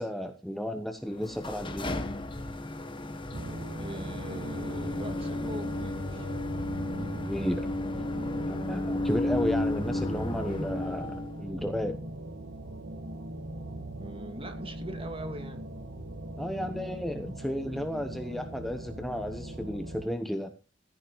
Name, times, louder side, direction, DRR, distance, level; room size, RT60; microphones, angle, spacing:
voice 1, 0.0-1.9 7.2-7.6 8.5-12.0 16.4-20.5, equal, ahead, 6 dB, 1.1 m, -33 dB
sound 1, 1.1-11.4, left 1 dB, 25° left, 1.6 m, -33 dB
sound 2, 3.3-20.1, right 1 dB, 80° right, 1.6 m, -40 dB
voice 2, 3.8-6.3 14.0-15.7, right 1 dB, 30° right, 7 dB, 2.3 m, -42 dB
15.0 x 13.5 x 3.1 m, 0.35 s
head